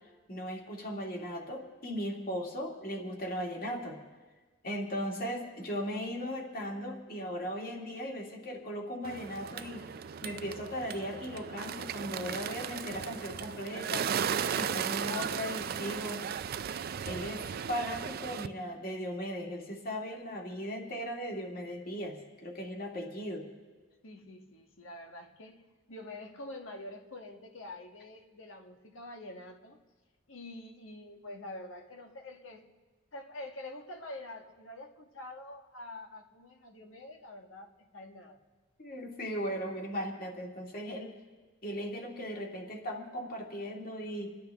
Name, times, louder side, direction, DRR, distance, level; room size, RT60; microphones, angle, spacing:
voice 1, 0.3-4.0 4.6-9.9 10.2-14.1 14.5-16.2 17.0-23.5 38.8-41.1 41.6-44.3, equal, 45° left, 0 dB, 2.1 m, -37 dB
Bird, 9.0-18.5, right 7 dB, 50° right, 0.4 m, -36 dB
voice 2, 24.0-29.8 30.3-32.7 33.1-38.4, left 1 dB, 90° left, 4 dB, 1.4 m, -46 dB
27.0 x 11.0 x 3.5 m, 1.3 s
head